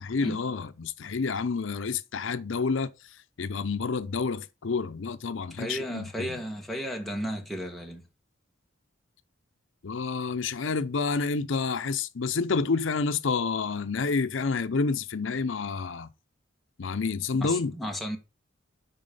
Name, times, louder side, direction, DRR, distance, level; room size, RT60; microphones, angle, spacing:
voice 1, 0.0-6.4 9.8-16.1 16.8-17.7, left 4 dB, 85° left, 0.6 m, -29 dB
voice 2, 5.6-8.0 17.4-18.2, equal, ahead, 1.7 m, -34 dB
10.5 x 4.2 x 5.4 m
head